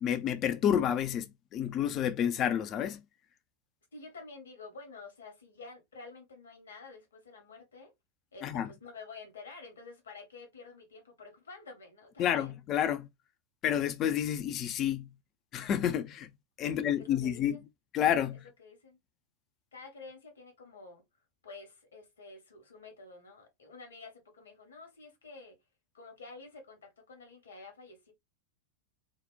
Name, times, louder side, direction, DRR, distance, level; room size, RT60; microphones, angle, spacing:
voice 1, 0.0-3.0 8.4-8.7 12.2-13.1 13.6-15.1 15.5-16.3 16.6-17.6 17.9-18.4, left 9 dB, 35° left, 0.3 m, -29 dB
voice 2, 3.9-7.9 8.3-12.5 16.6-17.7 18.6-19.0 19.7-25.6 25.9-28.1, left 3 dB, 70° left, 0.9 m, -50 dB
2.8 x 2.0 x 2.3 m
figure-of-eight pair, 90°, 0 cm